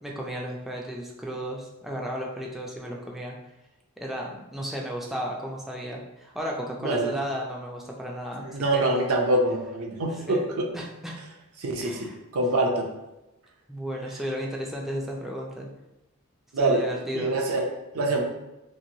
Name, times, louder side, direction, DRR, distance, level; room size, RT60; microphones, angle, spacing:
voice 1, 0.0-3.3 4.0-8.9 10.3-10.5 10.7-11.2 11.8-12.2 13.7-15.7 16.6-17.3, equal, ahead, -2 dB, 0.3 m, -34 dB
voice 2, 6.8-7.1 8.4-10.7 11.6-12.9 16.5-16.8 17.1-17.6 17.9-18.2, right 2 dB, 80° right, 2 dB, 0.5 m, -25 dB
3.0 x 2.5 x 2.7 m, 0.96 s
head